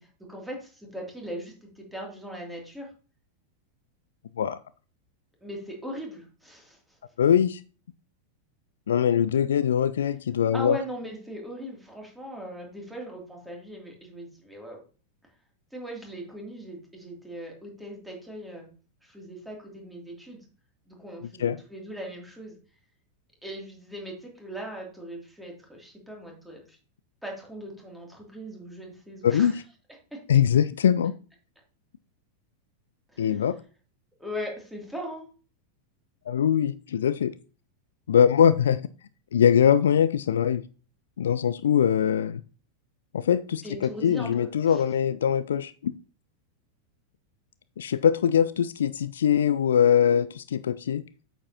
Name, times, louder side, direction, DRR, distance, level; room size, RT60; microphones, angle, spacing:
voice 1, 0.3-2.9 5.4-7.0 10.5-14.8 15.7-18.7 19.0-20.4 20.9-22.6 23.4-26.8 27.2-29.6 30.1-30.2 33.1-33.4 34.2-35.2 43.6-44.8, equal, 5° right, -1 dB, 2.8 m, -39 dB
voice 2, 7.2-7.6 8.9-10.8 21.4-21.6 29.2-29.6 30.3-31.1 33.2-33.5 36.3-37.3 38.1-38.8 39.3-40.6 41.2-42.4 43.1-45.9 47.8-51.0, left 8 dB, 65° left, 15 dB, 0.3 m, -22 dB
8.5 x 7.3 x 2.9 m, 0.37 s
figure-of-eight pair, 90°, 0 cm